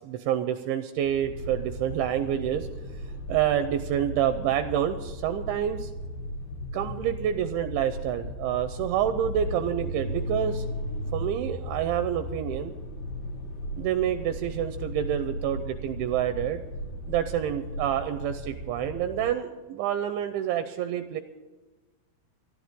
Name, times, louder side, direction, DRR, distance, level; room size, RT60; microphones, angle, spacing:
voice 1, 0.0-2.7 3.3-5.9 6.7-10.8 11.1-12.7 13.8-16.6 17.1-21.2, right 10 dB, 80° right, 9 dB, 2.8 m, -28 dB
sound 1, 1.0-19.3, equal, 55° left, 3.1 m, -36 dB
25.0 x 11.5 x 3.7 m, 1.2 s
omnidirectional pair, 5.8 m